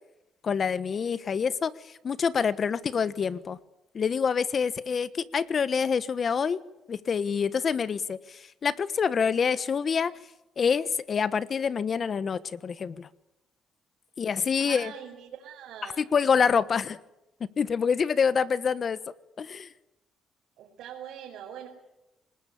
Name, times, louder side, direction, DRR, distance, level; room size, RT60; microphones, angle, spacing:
voice 1, 0.4-3.6 3.9-6.6 6.9-10.1 10.6-13.1 14.2-14.9 15.8-17.0 17.6-19.0 19.4-19.7, left 6 dB, 45° left, 15 dB, 1.2 m, -26 dB
voice 2, 14.6-16.0 20.6-21.7, right 9 dB, 85° right, -2 dB, 5.1 m, -42 dB
26.0 x 20.0 x 8.6 m, 0.96 s
cardioid pair, 90°, 0 cm